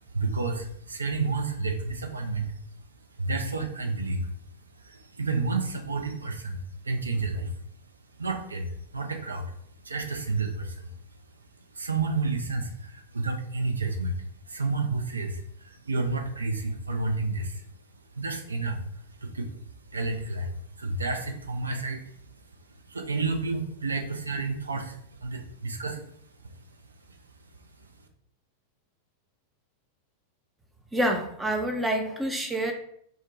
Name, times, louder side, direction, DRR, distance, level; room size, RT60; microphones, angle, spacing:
voice 1, 0.1-2.5 3.2-4.3 4.8-7.5 8.2-9.5 9.8-10.9 11.7-17.7 18.2-19.5 19.9-22.1 22.8-26.0 26.4-26.6 27.8-27.9, right 3 dB, 75° right, 4 dB, 0.4 m, -30 dB
voice 2, 30.9-32.7, right 1 dB, 10° right, 3 dB, 0.5 m, -27 dB
2.4 x 2.2 x 3.8 m, 0.68 s
figure-of-eight pair, 90°, 0 cm